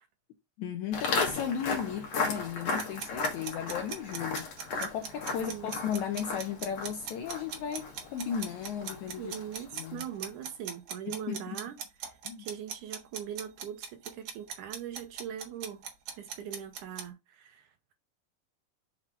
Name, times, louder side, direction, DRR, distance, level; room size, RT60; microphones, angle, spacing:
voice 1, 0.6-4.5 4.8-10.1 11.1-11.6 12.2-12.5, left 8 dB, 80° left, 1.7 m, -35 dB
Walk footsteps, 0.9-10.1, left 4 dB, 55° left, 2.3 m, -36 dB
sound 1, 2.8-17.1, right 7 dB, 60° right, 1.9 m, -40 dB
voice 2, 5.3-5.7 9.2-11.8 12.0-15.8 16.2-17.9, right 9 dB, 75° right, 2.0 m, -41 dB
5.8 x 4.7 x 3.6 m
omnidirectional pair, 4.1 m